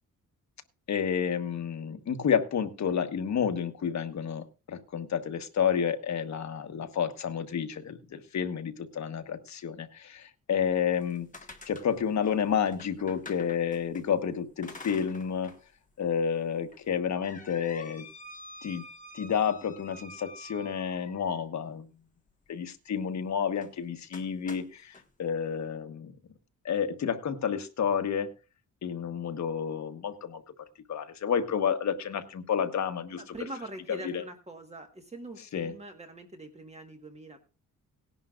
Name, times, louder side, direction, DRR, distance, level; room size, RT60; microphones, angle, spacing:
voice 1, 0.9-11.3 11.7-15.5 16.0-18.0 18.6-18.8 19.1-21.9 22.5-26.1 26.6-28.4 28.8-30.4 30.9-33.3 33.9-34.2 35.5-35.7, left 7 dB, 55° left, 7 dB, 1.3 m, -30 dB
sound 1, 10.9-14.0 14.6-15.6 16.0-16.1 16.7-21.4 23.5-23.7 24.1-25.0, left 2 dB, 25° left, 1.6 m, -48 dB
voice 2, 33.1-37.4, right 1 dB, 20° right, 5 dB, 1.5 m, -43 dB
18.5 x 11.0 x 2.5 m, 0.31 s
wide cardioid pair, 160°, 33 cm